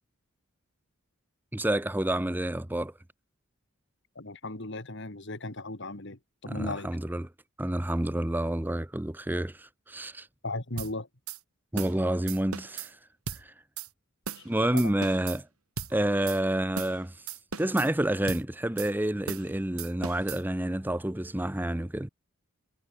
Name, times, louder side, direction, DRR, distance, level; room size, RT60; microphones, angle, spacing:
voice 1, 1.5-2.9 6.5-7.3 7.6-10.3 11.7-13.0 13.3-13.5 14.4-15.5 15.9-17.3 17.6-22.1, right 1 dB, 10° right, 0.6 m, -29 dB
voice 2, 4.2-6.9 10.4-11.1 14.4-14.5 14.7-14.9, left 2 dB, 55° left, 2.3 m, -36 dB
sound 1, 10.8-10.9 11.3-11.4 11.8-12.0 12.3-12.9 13.3-13.4 13.8-13.9 14.3-14.5 14.8-15.4 15.8-15.9 16.3-16.4 16.8-17.0 17.3-17.9 18.3-18.4 18.8-18.9 19.3-19.5 19.8-20.4, right 6 dB, 85° right, 4.7 m, -37 dB
head